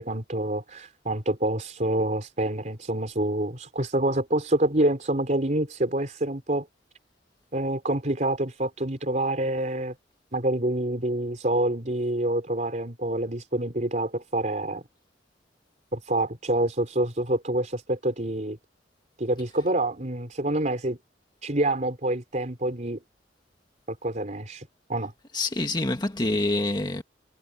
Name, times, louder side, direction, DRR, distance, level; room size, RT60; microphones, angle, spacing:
voice 1, 0.0-6.7 7.5-9.9 10.3-14.8 15.9-18.6 19.2-21.0 21.4-23.0 23.9-25.1, right 1 dB, 45° right, 4.1 m, -27 dB
voice 2, 25.3-27.0, left 2 dB, 25° left, 1.7 m, -26 dB
head